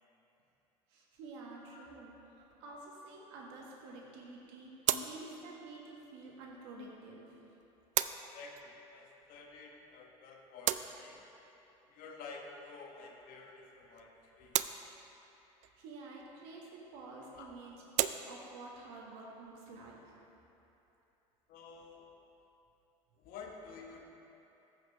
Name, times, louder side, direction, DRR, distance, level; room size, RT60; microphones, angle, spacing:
voice 1, 0.9-2.2 2.6-4.8 5.0-7.2 15.6-17.8 18.3-20.2, right 3 dB, 75° right, -2 dB, 1.7 m, -50 dB
sound 1, 2.3-21.7, right 12 dB, 50° right, 0.4 m, -41 dB
voice 2, 8.3-11.2 11.9-14.6 17.3-17.5 21.5-22.1 23.2-24.0, left 4 dB, 65° left, 1 dB, 1.2 m, -50 dB
14.0 x 5.8 x 3.3 m, 3.0 s
hypercardioid pair, 70°, 16 cm